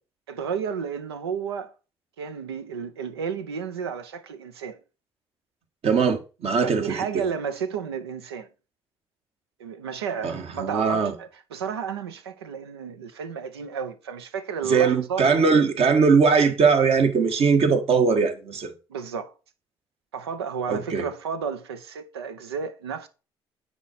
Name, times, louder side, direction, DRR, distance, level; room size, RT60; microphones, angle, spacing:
voice 1, 0.3-1.7 2.2-4.8 6.6-8.5 9.6-15.2 18.9-19.3 20.1-23.1, right 6 dB, 85° right, 0.8 m, -32 dB
voice 2, 5.8-7.2 10.2-11.1 14.6-18.7 20.7-21.0, right 5 dB, 50° right, 1.5 m, -21 dB
9.3 x 4.5 x 4.2 m
hypercardioid pair, 50°, 13 cm